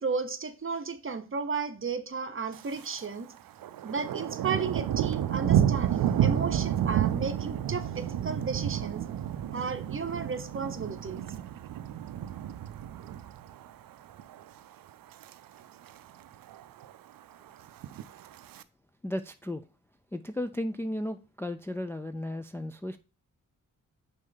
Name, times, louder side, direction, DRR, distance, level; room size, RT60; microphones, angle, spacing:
voice 1, 0.0-3.3 3.8-9.0 9.5-11.2, right 5 dB, 40° right, 0.9 m, -34 dB
Thunder, 2.5-3.1 3.4-13.7 14.1-14.4 14.9-15.3 15.6-15.7 15.9-16.0 16.3-16.9 17.7-18.6, right 10 dB, 85° right, 0.5 m, -30 dB
voice 2, 19.0-19.6 20.1-23.0, left 1 dB, 5° left, 0.4 m, -34 dB
6.2 x 4.4 x 3.9 m
cardioid pair, 65°, 34 cm